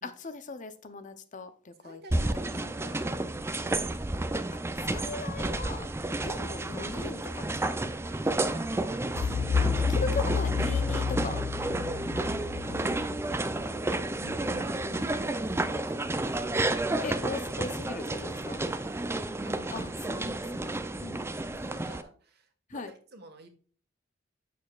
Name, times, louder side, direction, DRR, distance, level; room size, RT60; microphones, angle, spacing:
voice 1, 0.0-2.2 4.8-5.9 6.2-8.0 9.6-11.5 14.2-14.8 17.0-18.6 19.7-21.2 22.7-22.9, left 3 dB, 40° left, 0.6 m, -39 dB
voice 2, 1.8-4.0 6.2-6.4 8.3-9.5 12.1-12.3 12.6-13.2 14.3-16.4 18.8-19.0 19.4-19.9 21.5-23.5, right 1 dB, 55° right, 1.5 m, -50 dB
sound 1, 2.1-22.0, right 2 dB, 15° right, 0.4 m, -31 dB
sound 2, 9.1-14.0, left 6 dB, 70° left, 0.3 m, -30 dB
sound 3, 9.1-18.7, left 1 dB, 15° left, 1.1 m, -48 dB
7.9 x 6.6 x 2.4 m
head